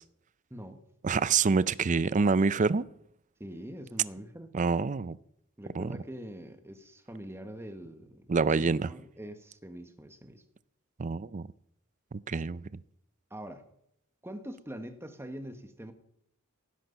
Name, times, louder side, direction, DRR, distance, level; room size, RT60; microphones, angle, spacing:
voice 1, 0.5-0.8 3.4-4.6 5.6-8.3 8.6-10.4 13.3-13.6 14.2-15.9, equal, 10° right, 1.3 m, -44 dB
voice 2, 1.0-2.8 4.5-5.2 5.8-6.0 8.3-8.9 11.0-11.5 12.3-12.6, right 4 dB, 35° right, 0.5 m, -26 dB
16.5 x 10.5 x 5.7 m
head